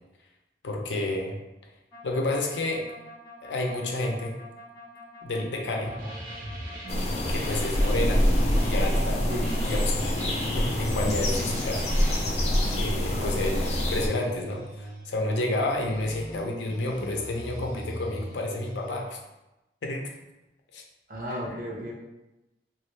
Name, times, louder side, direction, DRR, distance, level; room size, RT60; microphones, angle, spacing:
voice 1, 0.6-1.4 2.0-2.8 3.4-4.3 5.2-5.9 7.3-8.3 8.6-10.1 10.5-11.8 12.7-19.2 19.8-20.0 20.7-20.8, left 2 dB, 85° left, 1 dB, 0.6 m, -30 dB
sound 1, 1.9-9.6 9.9-12.1 12.6-15.1 15.6-19.0, equal, 15° left, 1.2 m, -42 dB
sound 2, 5.8-13.2, right 1 dB, 85° right, 0.7 m, -38 dB
sound 3, 6.9-14.1, left 1 dB, 35° left, 0.4 m, -25 dB
voice 2, 9.3-9.7 13.1-13.4 21.1-21.9, equal, 50° right, -3 dB, 0.7 m, -35 dB
3.0 x 2.4 x 3.1 m, 0.97 s
head